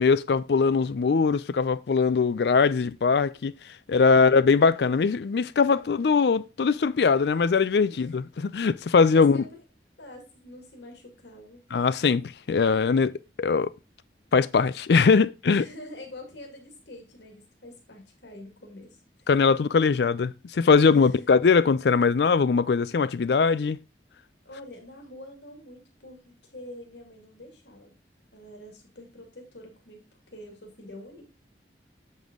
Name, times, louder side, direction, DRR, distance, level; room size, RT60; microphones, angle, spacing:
voice 1, 0.0-3.5 3.9-9.4 11.7-13.1 13.4-13.7 14.3-15.6 19.3-23.8, left 5 dB, 70° left, 0.4 m, -21 dB
voice 2, 7.8-8.2 8.9-9.4 10.0-11.6 15.4-19.3 20.9-21.3 24.4-28.0 28.3-31.3, left 1 dB, 85° left, 2.1 m, -46 dB
7.7 x 5.4 x 3.7 m
head